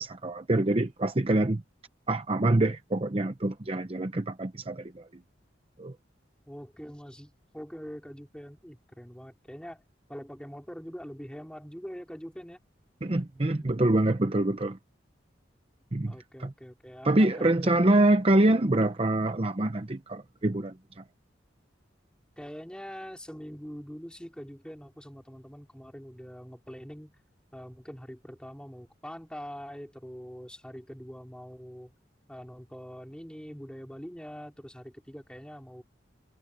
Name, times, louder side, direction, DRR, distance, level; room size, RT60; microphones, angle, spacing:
voice 1, 0.0-1.6 2.1-5.1 5.8-5.9 13.0-14.8 15.9-16.5 17.0-21.0, right 1 dB, 30° right, 0.8 m, -25 dB
voice 2, 6.5-9.8 10.1-12.6 13.3-13.8 16.1-18.1 22.4-27.2 27.5-31.9 32.3-35.8, equal, 5° left, 4.5 m, -44 dB
head